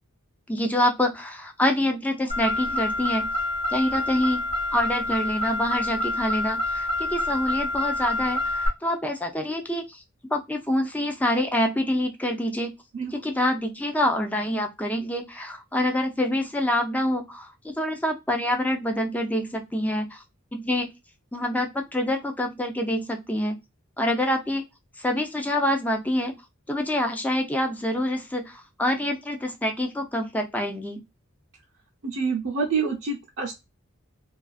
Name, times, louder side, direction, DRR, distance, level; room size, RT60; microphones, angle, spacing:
voice 1, 0.5-3.3 3.7-4.4 4.7-9.9 10.3-12.7 13.2-20.2 20.5-20.9 21.3-23.6 24.0-24.6 25.0-26.3 26.7-31.0, left 1 dB, 5° left, 3 dB, 0.5 m, -26 dB
Car, 2.3-8.7, left 2 dB, 35° left, 0.8 m, -27 dB
voice 2, 32.0-33.5, right 5 dB, 60° right, -4 dB, 0.6 m, -27 dB
2.4 x 2.3 x 2.3 m, 0.21 s
head